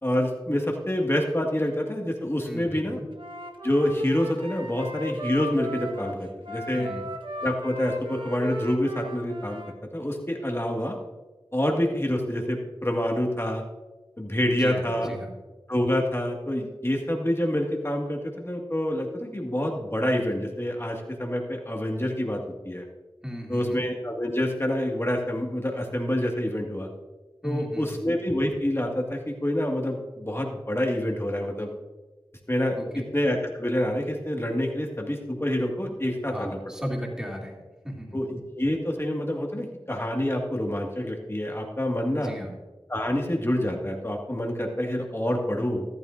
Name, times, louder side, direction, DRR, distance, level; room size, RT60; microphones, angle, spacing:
voice 1, 0.0-3.0 3.6-6.9 7.4-9.6 9.9-11.0 11.5-13.6 14.2-15.1 15.7-22.9 23.5-26.9 27.4-31.7 32.5-32.8 33.1-36.6 38.1-42.3 42.9-45.9, left 1 dB, 25° left, 1 dB, 1.8 m, -27 dB
voice 2, 2.4-3.1 6.7-7.1 14.6-15.3 23.2-23.8 27.4-28.0 32.8-33.1 35.9-38.2 42.1-42.5, equal, 5° right, -2 dB, 2.8 m, -36 dB
Wind instrument woodwind instrument, 3.1-9.8, equal, 60° right, 1.2 m, -36 dB
14.0 x 12.5 x 2.6 m, 1.2 s
wide cardioid pair, 40°, 9 cm